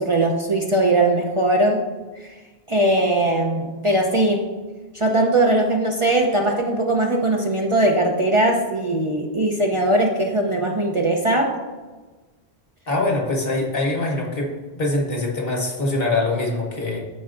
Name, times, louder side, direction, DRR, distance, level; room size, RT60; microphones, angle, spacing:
voice 1, 0.0-1.8 2.2-2.3 2.7-4.5 4.9-11.6, right 1 dB, 35° right, 0 dB, 0.7 m, -20 dB
voice 2, 12.9-14.5 14.7-17.0, left 2 dB, 60° left, 0 dB, 1.4 m, -23 dB
13.0 x 4.6 x 2.5 m, 1.3 s
omnidirectional pair, 1.1 m